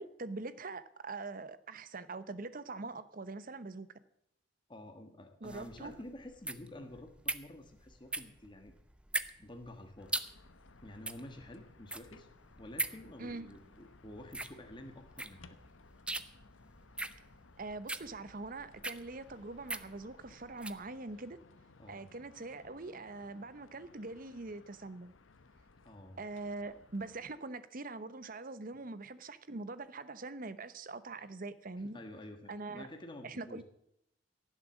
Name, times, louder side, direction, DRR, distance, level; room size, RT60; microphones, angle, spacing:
voice 1, 0.0-3.9 5.4-5.9 13.2-13.5 17.6-21.4 21.9-25.1 26.2-32.0 32.5-32.9 33.2-33.6, right 3 dB, 45° right, 15 dB, 0.9 m, -43 dB
voice 2, 4.7-8.7 9.4-10.1 10.8-12.3 12.5-15.7 21.8-22.0 25.8-26.2 31.1-31.2 31.7-33.6, left 1 dB, 25° left, 5 dB, 1.5 m, -50 dB
sound 1, 5.4-20.8, right 2 dB, 5° right, 0.6 m, -41 dB
sound 2, 10.0-27.4, left 3 dB, 90° left, 1.0 m, -61 dB
16.5 x 7.6 x 7.3 m, 0.75 s
head